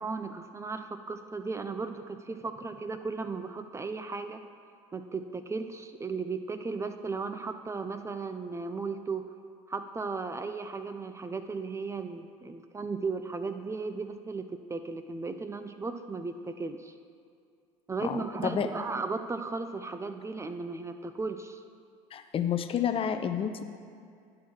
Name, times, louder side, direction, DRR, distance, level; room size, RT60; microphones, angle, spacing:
voice 1, 0.0-4.4 4.9-9.2 9.7-16.9 17.9-21.6, right 4 dB, 20° right, 9 dB, 0.4 m, -36 dB
voice 2, 18.0-18.7 22.1-23.6, left 8 dB, 35° left, 8 dB, 0.5 m, -30 dB
10.5 x 3.8 x 6.2 m, 2.4 s
hypercardioid pair, 75°, 16 cm